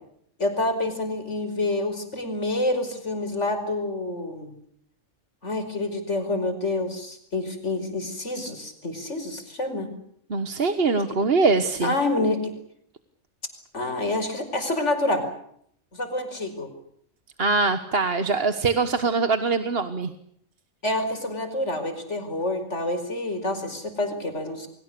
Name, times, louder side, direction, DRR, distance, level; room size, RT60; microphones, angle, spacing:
voice 1, 0.4-4.5 5.4-10.0 11.8-12.5 13.7-15.3 15.9-16.7 20.8-24.7, left 2 dB, 65° left, 7 dB, 5.5 m, -27 dB
voice 2, 10.3-11.9 17.4-20.1, right 4 dB, 50° right, 10 dB, 1.5 m, -23 dB
29.0 x 23.5 x 6.8 m, 0.69 s
omnidirectional pair, 1.3 m